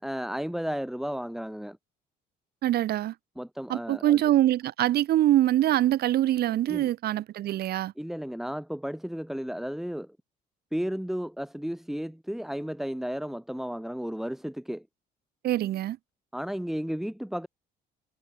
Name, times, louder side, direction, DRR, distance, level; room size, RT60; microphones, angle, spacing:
voice 1, 0.0-1.8 3.4-4.2 6.7-6.9 8.0-10.2 10.7-14.9 16.3-17.5, equal, ahead, 6.2 m, -33 dB
voice 2, 2.6-3.1 3.7-7.9 15.4-16.0, right 13 dB, 70° right, 5.7 m, -24 dB
cardioid pair, 110°, 17 cm